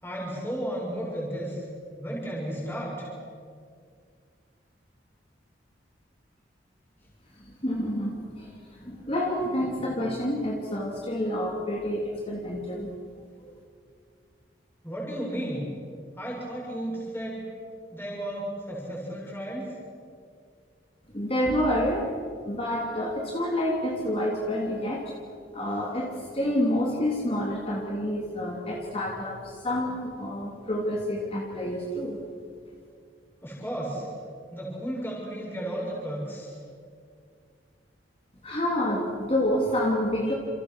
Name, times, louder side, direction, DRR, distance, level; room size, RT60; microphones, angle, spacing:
voice 1, 0.0-1.6 2.0-3.1 14.8-15.7 16.2-17.4 17.9-19.7 33.4-34.1 34.5-36.5, right 1 dB, 10° left, -3 dB, 6.9 m, -33 dB
voice 2, 7.5-8.5 8.8-12.9 21.1-22.1 22.5-25.1 25.5-32.2 38.4-40.3, left 1 dB, 30° left, -1 dB, 3.2 m, -28 dB
29.5 x 29.0 x 6.4 m, 2.2 s
head